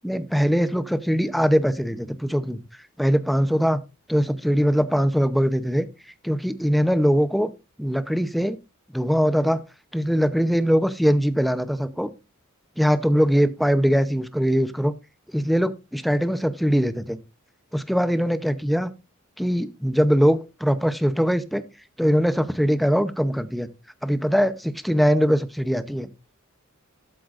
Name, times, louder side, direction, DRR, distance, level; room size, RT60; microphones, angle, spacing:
voice 1, 0.0-2.6 3.0-3.8 4.1-5.9 6.2-7.5 7.8-8.6 8.9-9.6 9.9-12.1 12.8-14.9 15.3-17.2 17.7-18.9 19.4-21.6 22.0-23.7 24.0-26.1, equal, ahead, 12 dB, 0.7 m, -21 dB
12.5 x 7.8 x 2.5 m, 0.27 s
head